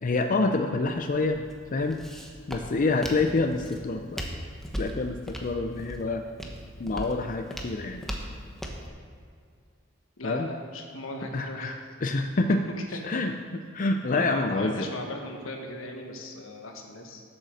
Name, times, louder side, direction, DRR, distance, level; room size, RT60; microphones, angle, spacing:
voice 1, 0.0-1.4 1.7-2.0 2.5-4.2 4.8-6.2 6.8-8.0 10.2-10.5 11.3-12.6 12.9-13.3 13.7-14.9, left 3 dB, 40° left, 5 dB, 0.5 m, -27 dB
Walk footsteps, 0.8-8.9, equal, ahead, 1.1 m, -39 dB
voice 2, 10.2-11.8 12.7-12.8 13.1-13.2 14.1-17.2, left 2 dB, 80° left, 2 dB, 1.5 m, -37 dB
9.0 x 8.3 x 6.5 m, 2.1 s
head